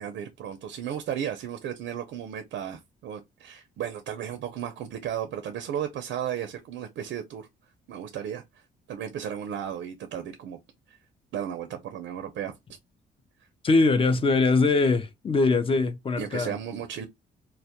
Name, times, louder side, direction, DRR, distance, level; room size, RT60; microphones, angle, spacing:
voice 1, 0.0-7.5 7.9-8.6 8.9-10.6 10.9-11.0 11.3-12.5 16.2-17.1, right 9 dB, 70° right, 0.4 m, -34 dB
voice 2, 13.6-16.5, left 3 dB, 25° left, 0.4 m, -22 dB
2.2 x 2.1 x 2.7 m
cardioid pair, 90°, 20 cm